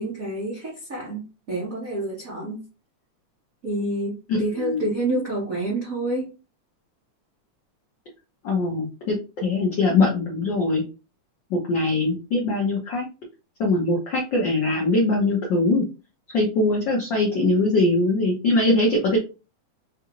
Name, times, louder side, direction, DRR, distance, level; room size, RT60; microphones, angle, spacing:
voice 1, 0.0-2.6 3.6-6.3, right 1 dB, 80° right, 0.7 m, -28 dB
voice 2, 8.4-10.8 11.5-13.1 13.6-15.8 16.3-19.2, left 2 dB, 75° left, 1.0 m, -22 dB
5.5 x 2.5 x 3.0 m
omnidirectional pair, 3.4 m